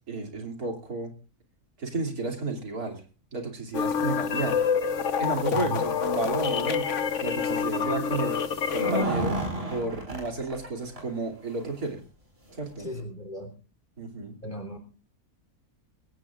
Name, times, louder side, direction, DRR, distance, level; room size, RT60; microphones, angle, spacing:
voice 1, 0.1-1.1 1.8-3.0 3.3-4.6 5.2-8.4 8.7-9.4 9.7-12.0 12.5-12.9 14.0-14.4, right 3 dB, 75° right, 3 dB, 3.3 m, -32 dB
sound 1, 3.7-9.0, left 7 dB, 55° left, 1.3 m, -27 dB
voice 2, 5.5-5.9 12.8-13.5 14.4-14.8, right 1 dB, 30° left, 3 dB, 3.5 m, -36 dB
sound 2, 8.6-10.7 10.9-11.0 11.5-11.6 12.5-12.6 13.0-13.1, right 1 dB, 40° right, 5.1 m, -30 dB
22.5 x 16.5 x 2.4 m, 0.35 s
omnidirectional pair, 1.6 m